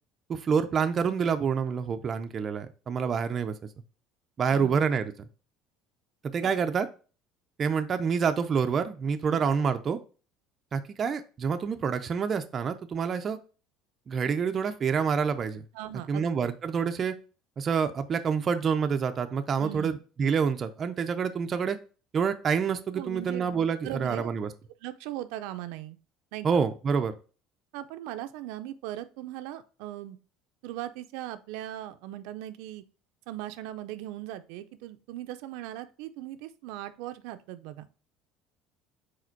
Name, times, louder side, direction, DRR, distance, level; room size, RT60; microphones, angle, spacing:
voice 1, 0.3-3.5 4.4-5.1 6.3-6.9 7.6-10.0 10.7-13.4 14.1-15.6 16.1-17.1 17.6-21.8 22.1-24.5 26.4-27.1, right 6 dB, 25° right, 8 dB, 0.5 m, -27 dB
voice 2, 4.5-4.8 6.4-6.5 9.3-9.4 15.7-16.5 19.6-20.0 22.9-24.3 24.8-26.0 26.3-26.7 27.7-30.2 30.6-32.8 33.3-37.9, right 14 dB, 75° right, 10 dB, 0.5 m, -39 dB
4.9 x 4.3 x 4.5 m, 0.36 s
cardioid pair, 165°, 0 cm